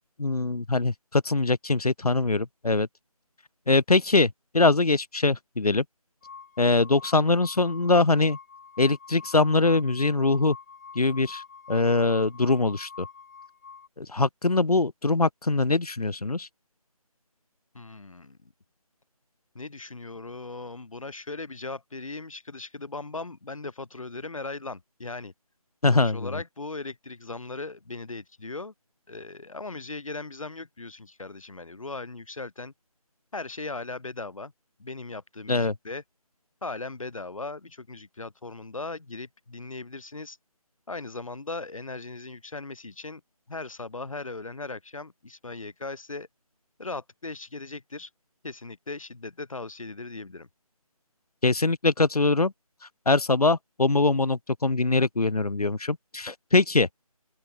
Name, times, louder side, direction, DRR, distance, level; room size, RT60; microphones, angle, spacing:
voice 1, 0.2-2.9 3.7-5.8 6.6-8.4 8.8-10.6 10.9-11.4 11.7-13.1 14.0-16.5 25.8-26.3 35.5-35.7 51.4-52.5 53.0-56.9, left 3 dB, 80° left, 1.6 m, -23 dB
sound 1, 6.2-13.9, left 5 dB, 25° left, 1.5 m, -45 dB
voice 2, 17.7-18.5 19.5-25.3 25.9-28.7 29.1-32.7 33.3-34.5 34.8-36.0 36.6-40.4 40.9-43.2 43.5-46.3 46.8-48.1 48.4-50.5, left 3 dB, 60° left, 6.5 m, -38 dB
open air
figure-of-eight pair, 170°, 19 cm